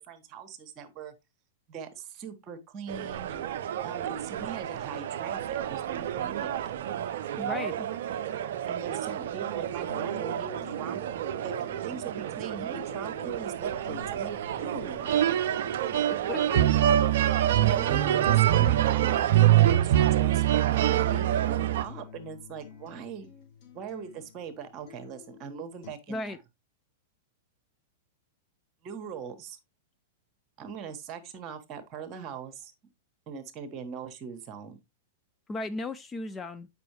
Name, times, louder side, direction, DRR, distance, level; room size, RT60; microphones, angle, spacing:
voice 1, 0.1-1.1 1.7-3.5 3.8-6.6 8.7-11.0 11.4-11.6 11.8-15.1 17.6-19.3 19.5-23.3 23.7-26.4 28.8-29.6 30.6-32.7 33.3-34.8, right 7 dB, 35° right, 1.4 m, -40 dB
sound 1, 2.9-21.8, right 12 dB, 60° right, 0.5 m, -26 dB
voice 2, 7.4-7.9 16.1-16.7 26.1-26.4 35.5-36.7, left 2 dB, 15° left, 0.5 m, -35 dB
sound 2, 9.9-25.9, left 9 dB, 45° left, 3.2 m, -51 dB
7.6 x 5.5 x 3.1 m
figure-of-eight pair, 100°, 0 cm